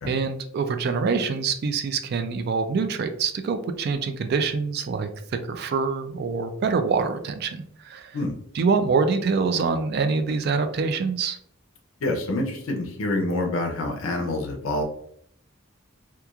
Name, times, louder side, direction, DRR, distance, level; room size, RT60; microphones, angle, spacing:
voice 1, 0.1-5.1 5.5-8.2 8.5-11.4, right 5 dB, 50° right, 8 dB, 0.3 m, -25 dB
voice 2, 12.0-14.8, left 2 dB, 80° left, 2 dB, 0.5 m, -27 dB
2.9 x 2.3 x 2.3 m, 0.66 s
head